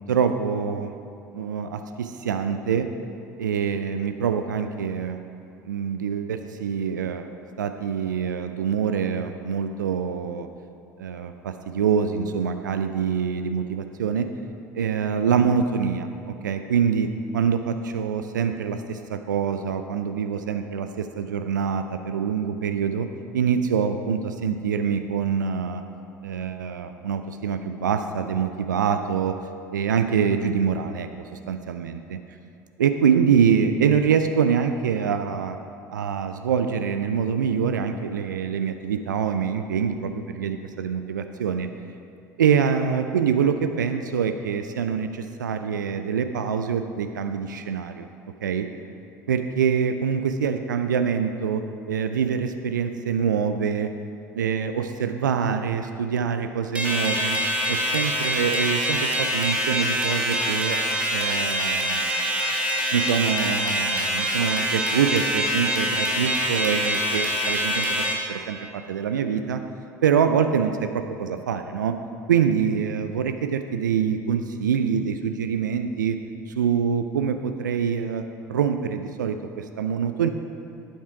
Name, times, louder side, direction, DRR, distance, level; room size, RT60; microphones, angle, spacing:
voice 1, 0.1-0.9 1.3-2.9 3.4-5.2 5.6-7.3 7.6-10.5 11.0-14.3 14.7-17.1 17.3-23.1 23.3-25.8 26.2-29.4 29.7-32.2 32.8-35.6 35.9-41.7 42.4-48.1 48.4-48.7 49.3-53.9 54.3-57.4 57.7-60.8 61.1-62.1 62.9-69.6 70.0-71.9 72.3-76.2 76.5-78.2 78.5-80.3, right 7 dB, 80° right, 8 dB, 0.4 m, -25 dB
sound 1, 56.7-68.1, equal, 10° right, 1.8 m, -25 dB
8.7 x 7.3 x 4.7 m, 2.6 s
figure-of-eight pair, 65°, 10 cm